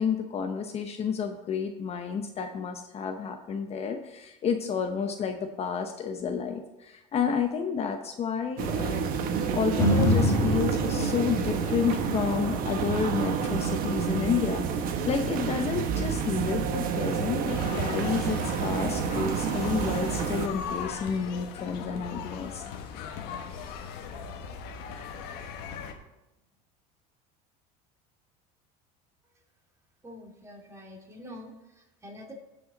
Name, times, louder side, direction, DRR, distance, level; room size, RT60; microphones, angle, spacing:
voice 1, 0.0-9.1 9.5-22.7, left 6 dB, 35° left, 6 dB, 0.8 m, -30 dB
sound 1, 8.6-20.5, right 6 dB, 55° right, 1.2 m, -29 dB
sound 2, 9.8-17.9 18.4-18.5, left 1 dB, 20° left, 2.0 m, -30 dB
sound 3, 17.5-25.9, left 7 dB, 65° left, 1.3 m, -38 dB
voice 2, 30.0-32.3, left 1 dB, 15° right, 1 dB, 2.4 m, -46 dB
16.0 x 5.6 x 4.0 m, 0.96 s
supercardioid pair, 110°, 18 cm